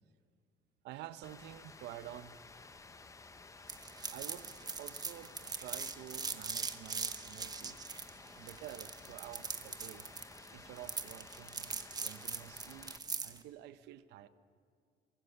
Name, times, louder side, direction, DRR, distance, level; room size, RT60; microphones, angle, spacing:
voice 1, 0.8-2.4 4.1-7.8 8.3-10.1 10.5-14.3, right 12 dB, 85° right, 13 dB, 0.8 m, -50 dB
Rain, 1.2-13.0, left 3 dB, 20° left, 0.8 m, -54 dB
sound 1, 3.7-13.4, right 4 dB, 25° right, 1.1 m, -41 dB
23.5 x 16.5 x 7.0 m, 2.1 s
cardioid pair, 110°, 17 cm